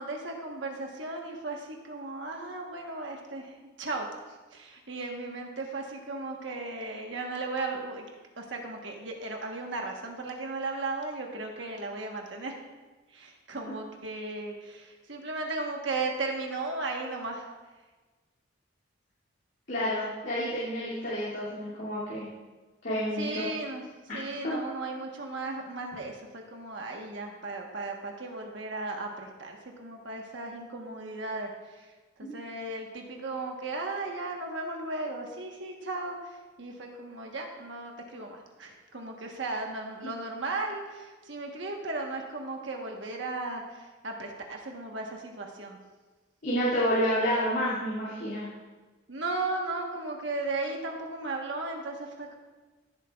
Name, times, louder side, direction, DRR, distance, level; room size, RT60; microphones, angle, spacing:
voice 1, 0.0-4.0 4.5-8.1 8.4-12.5 13.1-17.5 23.2-23.8 24.1-31.5 31.7-31.9 32.2-36.2 36.6-45.8 49.1-52.4, right 2 dB, 65° right, 1 dB, 1.2 m, -36 dB
voice 2, 19.7-22.3 22.8-23.5 24.1-24.6 32.2-32.3 46.4-48.5, equal, 60° left, -11 dB, 2.5 m, -29 dB
15.5 x 8.2 x 2.4 m, 1.3 s
head